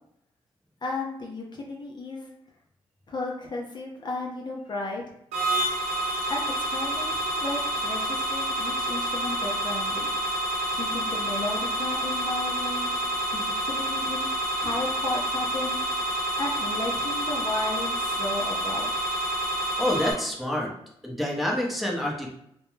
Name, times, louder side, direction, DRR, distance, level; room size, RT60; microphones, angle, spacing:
voice 1, 0.8-2.3 3.1-5.0 6.3-10.1 10.7-13.0 13.3-14.3 14.5-15.8 16.4-18.9, left 2 dB, 40° left, -1 dB, 0.6 m, -34 dB
sound 1, 5.3-20.1, right 1 dB, 85° right, 0.7 m, -28 dB
voice 2, 19.8-20.7 21.0-22.3, left 1 dB, ahead, -2 dB, 0.7 m, -27 dB
2.2 x 2.2 x 3.1 m, 0.74 s
supercardioid pair, 55°, 12 cm